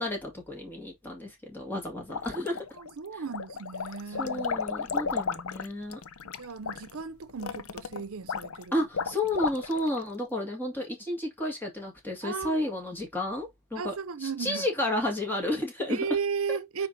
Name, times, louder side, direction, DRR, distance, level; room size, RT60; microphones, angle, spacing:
voice 1, 0.0-2.7 3.1-3.2 4.2-6.0 8.7-13.9 14.2-16.1 16.5-16.6, left 1 dB, 10° left, 2.1 m, -32 dB
sound 1, 2.1-2.9 3.3-10.0, left 5 dB, 90° left, 0.7 m, -34 dB
voice 2, 2.7-4.6 6.4-8.7 12.2-12.6 13.8-14.7 15.9-16.9, right 5 dB, 80° right, 0.7 m, -35 dB
9.5 x 3.5 x 2.8 m
head